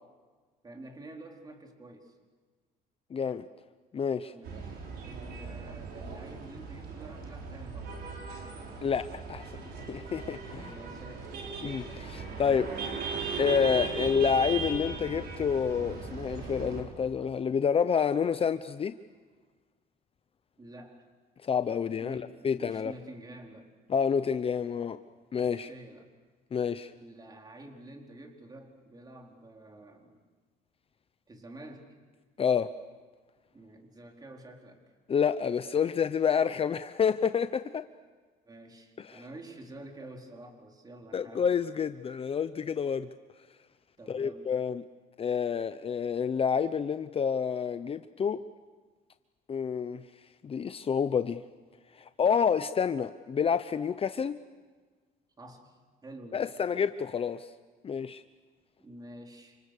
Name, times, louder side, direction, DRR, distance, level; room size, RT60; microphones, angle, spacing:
voice 1, 0.6-2.2 4.3-8.1 10.5-11.5 12.6-13.1 20.6-21.1 22.0-23.7 25.4-26.1 26.9-30.2 31.3-31.9 33.5-34.8 38.4-41.5 44.0-44.5 55.4-56.5 58.8-59.6, right 1 dB, 25° right, 2 dB, 4.4 m, -49 dB
voice 2, 3.1-3.5 3.9-4.3 8.8-9.5 9.8-10.7 11.6-12.7 13.4-18.9 21.4-22.9 23.9-25.0 25.3-25.7 26.5-26.9 32.4-32.7 35.1-37.8 39.0-39.2 41.1-43.1 44.1-44.8 45.2-48.4 49.5-50.0 50.4-51.4 52.0-54.4 56.3-57.5 57.8-58.2, left 7 dB, 35° left, 11 dB, 0.8 m, -28 dB
sound 1, 4.4-16.8, right 4 dB, 70° right, 6.7 m, -38 dB
30.0 x 27.0 x 6.7 m, 1.4 s
cardioid pair, 110°, 17 cm